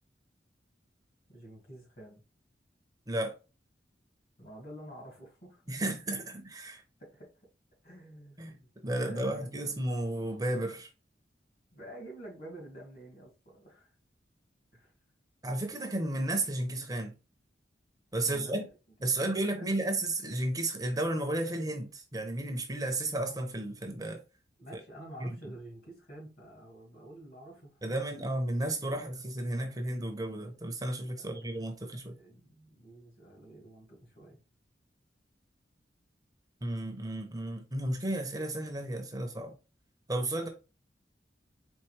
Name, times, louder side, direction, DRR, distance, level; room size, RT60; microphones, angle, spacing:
voice 1, 1.3-2.2 4.4-5.8 7.0-7.3 7.8-9.6 11.7-13.9 14.7-14.9 18.2-19.7 24.6-28.0 31.2-31.4 32.1-34.4, right 1 dB, 55° left, 2.4 m, -49 dB
voice 2, 5.7-6.8 8.4-8.6 8.8-10.9 15.4-17.1 18.1-18.6 19.0-24.2 25.2-25.3 27.8-32.1 36.6-39.5 40.1-40.5, right 1 dB, 20° right, 0.7 m, -33 dB
4.5 x 3.2 x 3.2 m
head